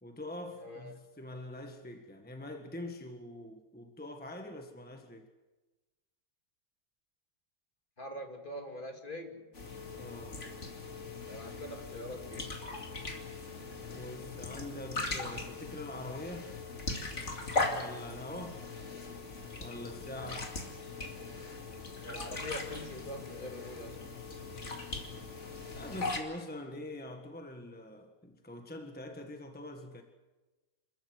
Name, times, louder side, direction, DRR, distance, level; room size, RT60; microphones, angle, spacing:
voice 1, 0.0-5.3 10.0-10.5 13.9-16.5 17.7-18.7 19.6-20.6 25.7-30.0, left 1 dB, 5° left, 5 dB, 1.5 m, -44 dB
voice 2, 0.6-1.0 8.0-9.5 11.3-12.5 22.0-24.0, left 1 dB, 35° left, 4 dB, 2.6 m, -43 dB
sound 1, 9.5-26.2, left 3 dB, 50° left, 2.8 m, -39 dB
27.0 x 14.0 x 9.5 m, 1.2 s
omnidirectional pair, 1.5 m